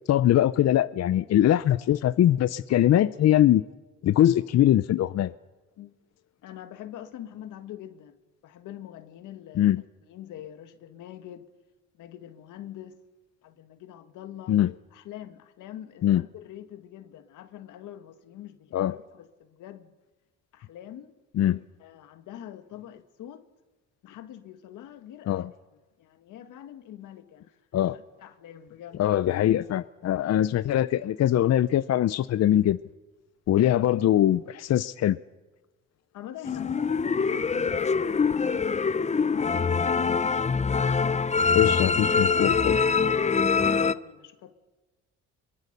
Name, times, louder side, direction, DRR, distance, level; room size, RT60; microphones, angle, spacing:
voice 1, 0.1-3.6 4.0-5.3 9.6-9.8 14.5-14.7 16.0-16.2 18.7-19.0 21.4-21.6 25.3-25.5 27.7-28.0 29.0-32.8 33.5-35.2 41.5-42.8, left 12 dB, 60° left, 0.6 m, -22 dB
voice 2, 6.4-9.7 10.1-11.5 11.9-13.0 13.4-14.6 14.9-19.9 20.5-21.1 21.8-23.5 24.0-25.4 26.0-29.0 36.1-40.2 43.3-44.5, left 11 dB, 90° left, 1.8 m, -44 dB
sound 1, 36.4-43.9, left 5 dB, 25° left, 0.7 m, -24 dB
25.0 x 22.5 x 6.8 m
cardioid pair, 90°, 30 cm